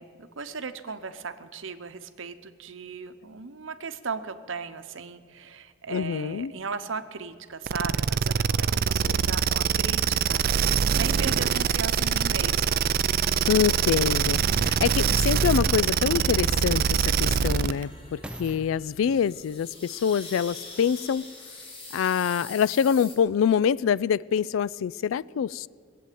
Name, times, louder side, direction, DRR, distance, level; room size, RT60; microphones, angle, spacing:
voice 1, 0.0-12.8, right 5 dB, 70° right, 10 dB, 0.8 m, -37 dB
voice 2, 5.9-6.5 9.0-9.2 13.5-16.8 17.2-21.3 21.9-25.7, left 7 dB, 80° left, 21 dB, 0.3 m, -25 dB
sound 1, 7.7-17.8, right 7 dB, 50° right, 0.4 m, -24 dB
sound 2, 9.9-23.2, left 2 dB, 25° left, 2.4 m, -46 dB
sound 3, 18.1-21.3 22.0-22.1, right 1 dB, 5° right, 0.6 m, -47 dB
19.5 x 7.8 x 9.3 m, 2.3 s
head